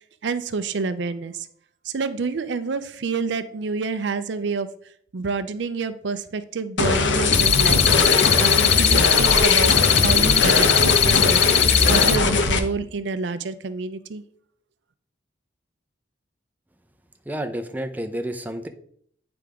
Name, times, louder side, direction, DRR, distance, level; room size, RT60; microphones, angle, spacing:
voice 1, 0.2-1.5 1.8-4.7 5.1-7.8 8.4-11.5 11.9-14.2, right 4 dB, 70° right, 12 dB, 0.5 m, -28 dB
sound 1, 6.8-12.6, left 3 dB, 75° left, 0.9 m, -20 dB
sound 2, 7.3-12.2, left 9 dB, 35° left, 0.4 m, -19 dB
voice 2, 17.3-18.7, right 1 dB, 10° right, 5 dB, 0.6 m, -30 dB
9.3 x 3.4 x 4.9 m, 0.63 s
head